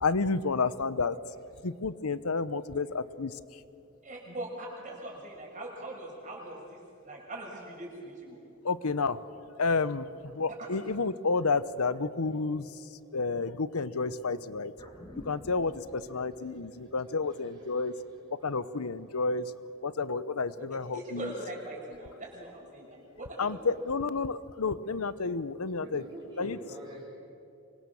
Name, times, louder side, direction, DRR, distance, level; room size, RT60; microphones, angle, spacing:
voice 1, 0.0-1.2 1.6-3.4 8.6-9.2 9.6-12.8 13.1-14.7 15.2-17.9 18.4-19.5 19.8-21.3 23.4-26.0 26.4-26.6, left 4 dB, 85° left, 16 dB, 0.8 m, -30 dB
voice 2, 4.0-8.4 10.5-10.8 20.6-20.7 20.9-23.9, right 1 dB, 35° right, -2 dB, 6.2 m, -41 dB
sound 1, 14.8-19.4 19.7-19.8, left 1 dB, 20° left, 2.6 m, -52 dB
voice 3, 17.3-18.0 22.9-23.0 25.8-27.0, right 1 dB, 20° right, -6 dB, 3.8 m, -47 dB
25.5 x 24.0 x 7.1 m, 2.7 s
head